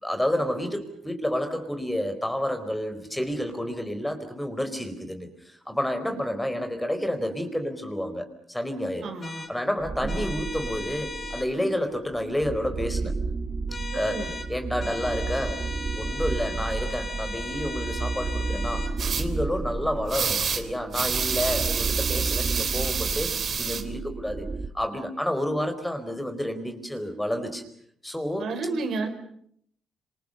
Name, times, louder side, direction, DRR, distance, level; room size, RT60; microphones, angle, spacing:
voice 1, 0.0-9.1 9.5-13.1 13.9-14.2 14.5-15.6 15.9-18.9 19.1-23.3 23.6-24.5 24.7-27.6 28.0-28.5, equal, 5° left, 8 dB, 4.6 m, -30 dB
voice 2, 9.0-9.5 10.0-10.3 13.9-14.3 28.4-29.1, right 3 dB, 65° right, 6 dB, 5.3 m, -32 dB
sound 1, 9.2-9.5 10.1-11.5 13.7-14.5 14.8-18.9, left 2 dB, 30° left, 4.2 m, -37 dB
sound 2, 9.8-11.5 12.1-24.7, right 3 dB, 30° right, 2.4 m, -32 dB
sound 3, 19.0-19.2 20.1-20.6 20.9-23.8, right 6 dB, 50° right, 3.5 m, -28 dB
27.5 x 26.5 x 6.8 m, 0.68 s
cardioid pair, 90°, 0 cm